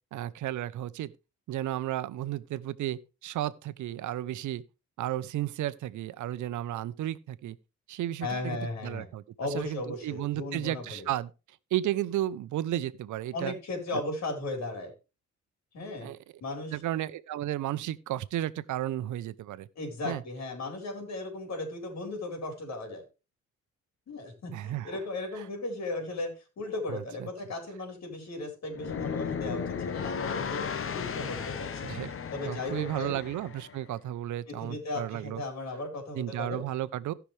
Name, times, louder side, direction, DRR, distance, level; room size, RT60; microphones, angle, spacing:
voice 1, 0.1-1.1 1.5-4.6 5.0-7.6 7.9-9.2 9.5-11.3 11.7-13.5 16.0-16.2 16.7-19.7 20.0-20.2 24.5-25.0 25.3-25.4 26.9-27.3 31.8-32.1 32.4-35.4 36.1-37.1, right 13 dB, 75° right, 0.8 m, -33 dB
voice 2, 8.2-9.1 9.4-11.1 13.3-14.9 15.7-16.1 16.4-16.8 19.8-23.0 24.1-30.6 30.9-31.9 32.3-33.2 34.5-36.6, left 2 dB, 60° left, 4.6 m, -36 dB
sound 1, 28.7-33.8, left 6 dB, 45° left, 1.1 m, -35 dB
18.0 x 6.0 x 3.3 m
cardioid pair, 90°, 30 cm